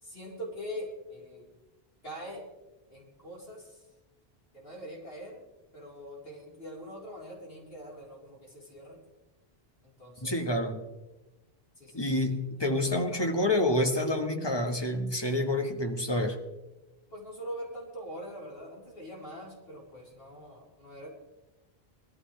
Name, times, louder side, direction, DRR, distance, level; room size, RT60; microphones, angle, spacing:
voice 1, 0.0-1.4 2.0-2.4 2.9-3.8 4.5-5.4 5.7-9.0 9.8-10.3 11.8-12.8 13.1-13.3 17.1-21.1, equal, 70° left, -4 dB, 4.3 m, -43 dB
voice 2, 10.2-10.8 11.9-16.4, left 1 dB, 25° left, 4 dB, 1.4 m, -28 dB
21.0 x 14.0 x 3.3 m, 1.1 s
omnidirectional pair, 1.0 m